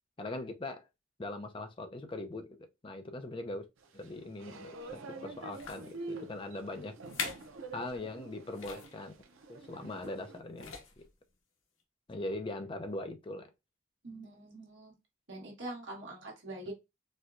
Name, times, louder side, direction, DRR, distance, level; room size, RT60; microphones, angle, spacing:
voice 1, 0.2-0.9 1.2-3.6 3.9-6.9 7.7-9.1 9.5-11.1 12.1-13.5, left 2 dB, 25° left, 0.4 m, -41 dB
sound 1, 3.8-10.4, right 3 dB, 90° right, 0.6 m, -47 dB
sound 2, 4.8-5.0 5.5-5.9 6.6-6.7 7.0-7.5 7.9-8.0 8.5-9.0 10.0-10.3 10.5-11.1 11.8-11.9, left 5 dB, 85° left, 0.9 m, -42 dB
voice 2, 14.0-14.9 15.3-16.7, right 2 dB, 70° right, 1.3 m, -44 dB
4.3 x 2.2 x 2.5 m
head